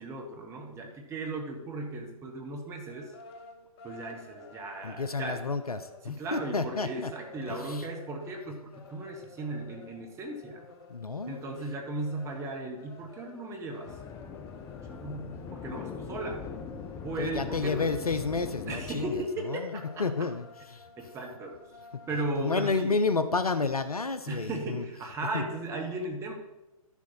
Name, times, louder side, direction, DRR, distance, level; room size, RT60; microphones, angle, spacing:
voice 1, 0.0-3.1 3.8-5.4 6.0-10.6 11.3-14.0 14.9-16.5 17.0-17.9 18.7-19.7 21.0-21.6 22.1-22.9 24.3-26.3, right 2 dB, 15° right, 2 dB, 1.4 m, -36 dB
sound 1, 2.9-22.5, left 5 dB, 45° left, 1.2 m, -51 dB
voice 2, 4.8-7.1 7.5-7.9 10.9-11.4 17.2-20.9 22.4-24.8 25.3-25.4, left 4 dB, 85° left, 10 dB, 0.6 m, -31 dB
sound 2, 13.9-19.2, left 6 dB, 15° left, 0.5 m, -41 dB
11.5 x 7.1 x 4.4 m, 0.99 s
figure-of-eight pair, 120°, 19 cm